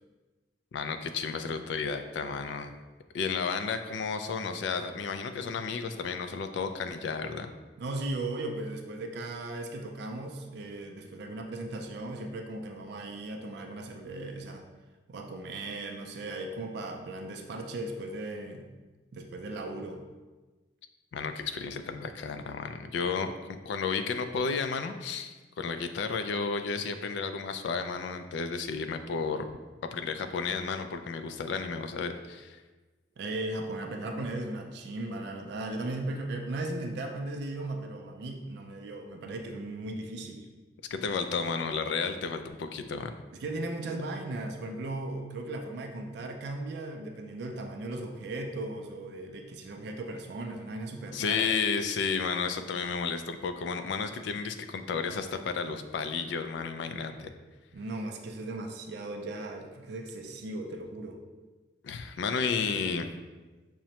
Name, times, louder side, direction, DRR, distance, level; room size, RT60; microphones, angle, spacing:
voice 1, 0.7-2.7 3.1-7.5 21.1-29.5 29.9-32.6 40.9-43.2 51.1-57.3 61.8-63.1, left 5 dB, 70° left, 7 dB, 0.3 m, -32 dB
voice 2, 7.8-14.7 15.1-18.7 19.1-20.0 33.2-40.5 43.3-51.5 57.7-61.2, right 2 dB, 65° right, 4 dB, 0.4 m, -37 dB
5.9 x 2.1 x 2.8 m, 1.2 s
head